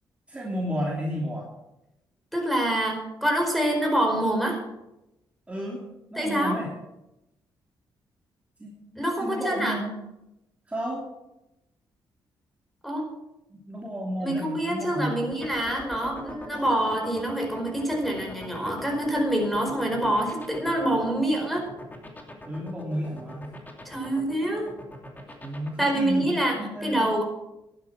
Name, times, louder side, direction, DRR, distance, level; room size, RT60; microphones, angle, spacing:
voice 1, 0.3-1.5 5.5-5.8 6.1-6.7 8.6-9.9 10.7-11.0 13.5-15.3 22.4-23.5 25.4-27.2, equal, 15° right, -3 dB, 2.9 m, -32 dB
voice 2, 2.3-4.6 6.2-6.6 9.0-9.8 12.8-13.1 14.2-21.7 23.8-24.7 25.8-27.2, right 1 dB, ahead, 1 dB, 4.8 m, -26 dB
sound 1, 15.3-25.7, left 1 dB, 20° left, 2.7 m, -41 dB
11.5 x 11.5 x 6.0 m, 0.92 s
cardioid pair, 90°, 9 cm